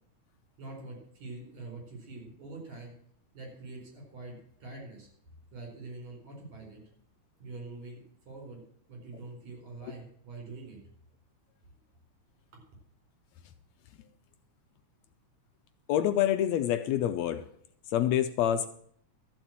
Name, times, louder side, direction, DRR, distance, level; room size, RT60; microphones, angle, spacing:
voice 1, 0.6-2.9 3.3-5.1 5.5-6.8 7.4-8.6 8.9-10.8 12.5-12.6, right 3 dB, 65° right, 1 dB, 6.1 m, -45 dB
voice 2, 15.9-17.5 17.9-18.7, left 11 dB, 75° left, 10 dB, 1.8 m, -27 dB
13.0 x 7.1 x 7.5 m, 0.64 s
omnidirectional pair, 3.4 m